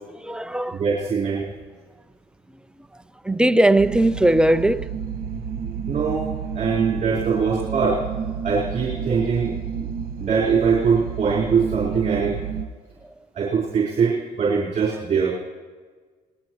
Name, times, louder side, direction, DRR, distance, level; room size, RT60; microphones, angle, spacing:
voice 1, 0.1-0.8 3.2-4.9, right 1 dB, 5° right, 0.5 m, -19 dB
voice 2, 0.7-1.5 5.9-6.3 6.5-8.0 8.4-9.9 10.2-12.4 13.3-15.4, right 5 dB, 40° right, 4.3 m, -22 dB
sound 1, 3.8-12.6, right 7 dB, 60° right, 1.6 m, -30 dB
24.0 x 19.5 x 3.1 m
cardioid pair, 110°, 17 cm